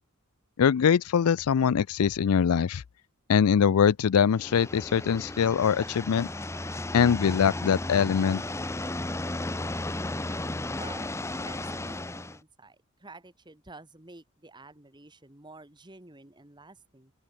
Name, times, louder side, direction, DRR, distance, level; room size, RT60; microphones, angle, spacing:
voice 1, 0.6-2.8 3.3-6.3 6.9-8.4, left 7 dB, 75° left, 0.4 m, -23 dB
sound 1, 4.3-12.4, left 2 dB, 10° left, 0.8 m, -34 dB
voice 2, 10.8-17.1, right 3 dB, 20° right, 1.9 m, -50 dB
open air
head